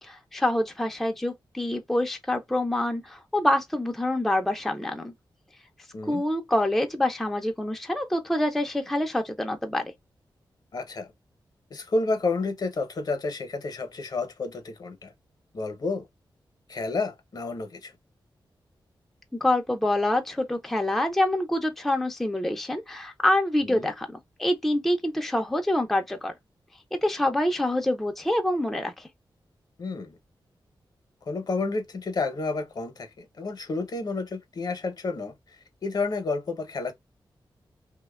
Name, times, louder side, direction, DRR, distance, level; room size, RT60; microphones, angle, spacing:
voice 1, 0.0-5.1 6.1-9.9 19.4-24.1 24.4-26.3 26.9-29.1, left 1 dB, ahead, 0.3 m, -26 dB
voice 2, 10.7-11.1 11.7-15.1 15.5-16.1 16.7-17.9 23.6-23.9 29.8-30.2 31.3-35.6 35.8-36.9, left 3 dB, 50° left, 0.6 m, -30 dB
2.8 x 2.1 x 2.2 m
wide cardioid pair, 150°, 9 cm